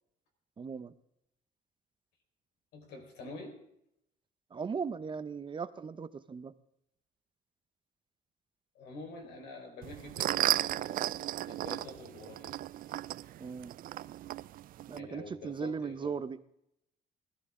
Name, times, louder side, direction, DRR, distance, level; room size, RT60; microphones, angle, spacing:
voice 1, 0.6-0.9 4.5-6.5 13.4-13.7 14.9-16.4, right 5 dB, 30° right, 13 dB, 0.7 m, -38 dB
voice 2, 2.7-3.6 8.7-11.0 11.4-12.6 14.9-16.2, left 3 dB, 80° left, 3 dB, 4.5 m, -47 dB
sound 1, 9.8-15.0, right 14 dB, 60° right, 0.4 m, -34 dB
20.0 x 14.0 x 3.7 m, 0.78 s
cardioid pair, 110°, 17 cm